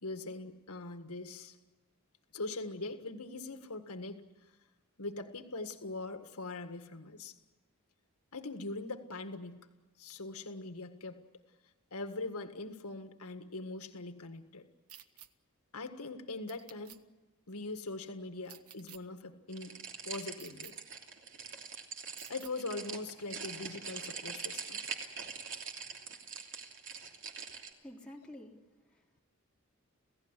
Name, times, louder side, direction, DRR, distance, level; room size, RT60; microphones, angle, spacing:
voice 1, 0.0-1.6 2.3-4.2 5.0-7.3 8.3-9.6 10.0-11.2 11.9-14.6 15.7-17.0 17.5-20.7 22.3-24.8, left 2 dB, 90° left, 7 dB, 1.9 m, -42 dB
sound 1, 14.9-15.3 16.5-17.0 18.4-19.0 20.4-20.7 22.2-22.5, right 10 dB, 80° right, 1.2 m, -52 dB
Plastic Being Crushed, 19.5-27.7, right 6 dB, 60° right, 2.9 m, -43 dB
voice 2, 27.8-28.6 28.9-29.2, left 1 dB, 5° left, -3 dB, 3.5 m, -50 dB
28.0 x 16.5 x 10.0 m, 1.2 s
head